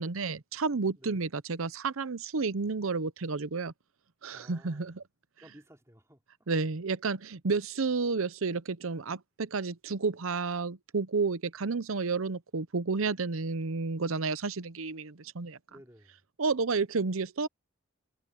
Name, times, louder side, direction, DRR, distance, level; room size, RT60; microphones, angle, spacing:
voice 1, 0.0-3.7 4.2-5.0 6.5-15.6 16.4-17.5, right 4 dB, 80° right, 0.8 m, -31 dB
voice 2, 4.3-4.9 5.4-6.5 15.7-16.2, equal, 15° right, 3.9 m, -56 dB
head